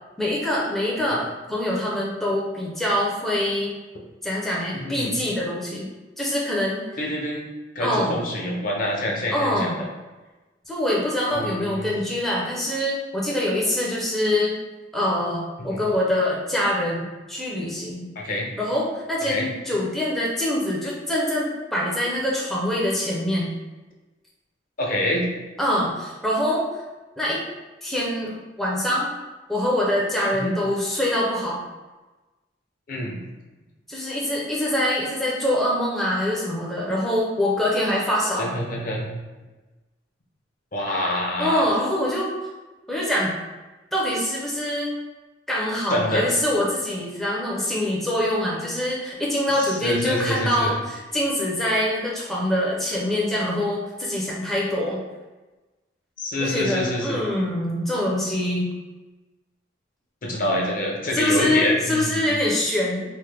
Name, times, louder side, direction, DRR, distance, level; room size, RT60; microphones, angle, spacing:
voice 1, 0.2-3.7 4.2-5.9 6.2-6.8 7.8-8.2 9.3-9.8 10.7-14.6 14.9-18.1 18.6-23.5 25.6-26.8 27.2-27.4 27.8-29.1 29.5-31.6 33.9-38.5 41.4-42.3 42.9-43.3 43.9-44.9 45.5-55.0 56.4-58.7 61.1-63.0, left 1 dB, ahead, -5 dB, 0.5 m, -24 dB
voice 2, 4.8-5.1 7.0-7.4 7.7-9.7 11.3-11.9 15.6-15.8 18.2-18.5 19.3-19.5 24.8-25.3 30.3-30.5 32.9-33.2 38.3-39.1 40.7-41.7 45.9-46.3 49.6-50.7 56.2-57.2 60.2-62.4, left 1 dB, 50° left, -2 dB, 0.6 m, -26 dB
3.1 x 2.1 x 3.3 m, 1.2 s
head